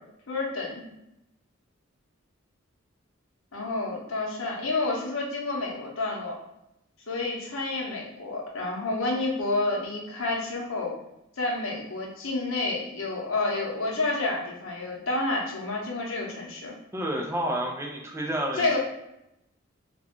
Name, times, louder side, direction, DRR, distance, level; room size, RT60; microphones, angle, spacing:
voice 1, 0.3-0.8 3.5-6.4 7.1-10.9 11.4-16.8 18.6-18.8, left 2 dB, 85° left, -2 dB, 0.8 m, -29 dB
voice 2, 16.9-18.8, right 1 dB, 15° right, 0 dB, 0.4 m, -30 dB
2.4 x 2.2 x 3.5 m, 0.85 s
head